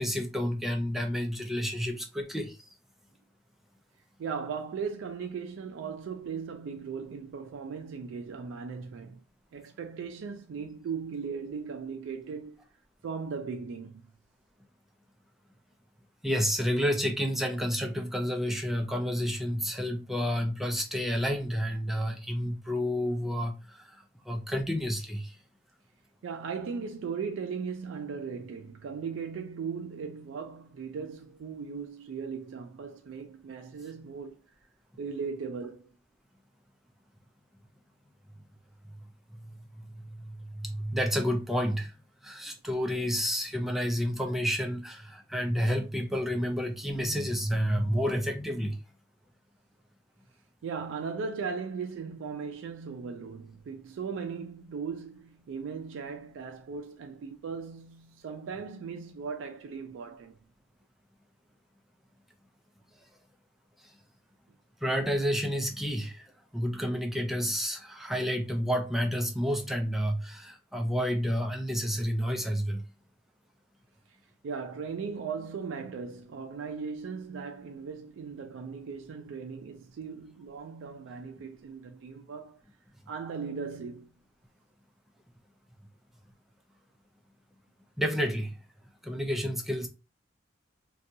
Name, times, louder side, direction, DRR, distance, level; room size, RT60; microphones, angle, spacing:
voice 1, 0.0-2.6 16.2-25.3 39.3-41.9 42.2-48.8 64.8-72.8 88.0-88.5 89.0-89.9, equal, ahead, 0.4 m, -30 dB
voice 2, 4.2-9.2 9.5-12.6 13.0-14.0 26.2-34.4 35.0-35.9 50.6-60.4 74.4-82.6 83.1-84.1, right 5 dB, 85° right, 0.3 m, -38 dB
2.6 x 2.3 x 2.6 m
head